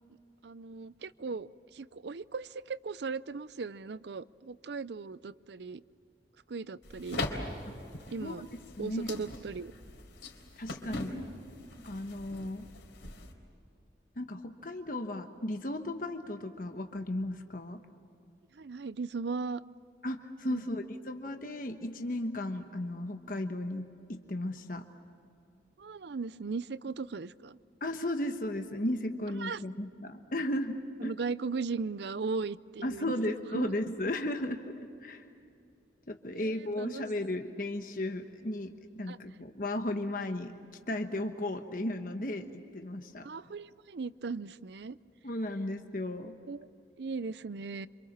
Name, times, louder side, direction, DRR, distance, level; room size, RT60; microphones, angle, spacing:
voice 1, 0.4-5.8 6.5-7.2 8.1-8.5 8.8-9.7 18.5-19.6 20.5-20.6 25.8-27.6 29.4-29.6 31.0-33.7 36.3-37.0 39.1-39.2 43.2-45.0 46.5-46.6 47.0-47.9, right 4 dB, 70° right, 17 dB, 0.5 m, -38 dB
sound 1, 6.8-13.3, left 2 dB, 90° left, 3.7 m, -41 dB
voice 2, 8.8-9.1 10.6-11.2 11.8-12.7 14.2-17.8 20.0-24.8 27.8-31.2 32.8-35.3 36.1-40.6 40.9-43.3 45.2-46.4, left 1 dB, 50° left, 6 dB, 1.1 m, -35 dB
27.0 x 26.5 x 7.3 m, 2.6 s
head